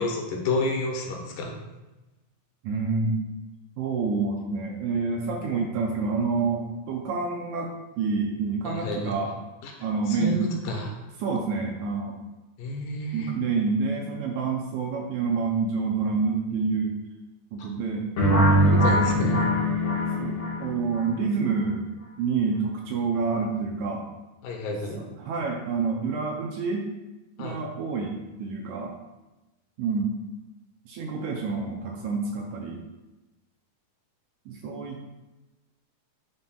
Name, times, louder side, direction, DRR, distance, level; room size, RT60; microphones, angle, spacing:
voice 1, 0.0-1.6 8.6-9.1 9.6-9.7 10.1-10.4 10.6-10.9 12.6-13.3 17.6-17.7 18.5-19.5 24.4-25.0 27.4-27.6, left 2 dB, 90° left, 0 dB, 2.7 m, -30 dB
voice 2, 2.6-3.2 3.8-9.3 9.8-10.4 11.2-12.2 13.1-16.9 17.5-18.0 18.5-18.8 19.1-19.3 20.2-21.9 22.2-24.0 25.2-26.9 27.4-28.9 29.8-30.2 30.9-32.8 34.5-35.0, right 4 dB, 80° right, 0 dB, 1.8 m, -28 dB
sound 1, 18.2-21.0, equal, 50° left, 2.3 m, -22 dB
10.5 x 4.1 x 2.3 m, 1.1 s
omnidirectional pair, 3.8 m